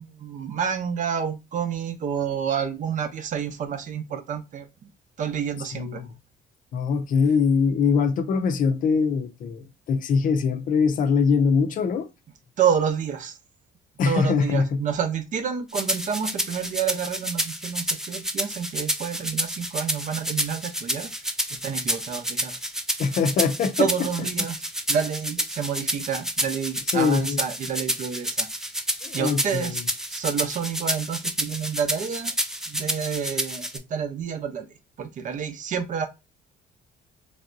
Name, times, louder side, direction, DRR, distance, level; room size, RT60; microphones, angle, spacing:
voice 1, 0.0-4.7 5.2-6.0 12.6-13.3 14.0-21.1 21.6-22.5 23.8-24.6 24.9-28.5 29.1-29.8 30.1-32.3 32.7-34.7 35.0-36.1, right 7 dB, 50° right, 0.7 m, -29 dB
voice 2, 5.6-6.1 6.7-12.1 14.0-14.8 23.0-23.9 24.2-24.3 26.9-27.4 29.0-29.8, left 5 dB, 55° left, 0.5 m, -23 dB
sound 1, 15.7-33.8, equal, 5° right, 0.4 m, -29 dB
3.3 x 2.7 x 2.5 m
cardioid pair, 110°, 17 cm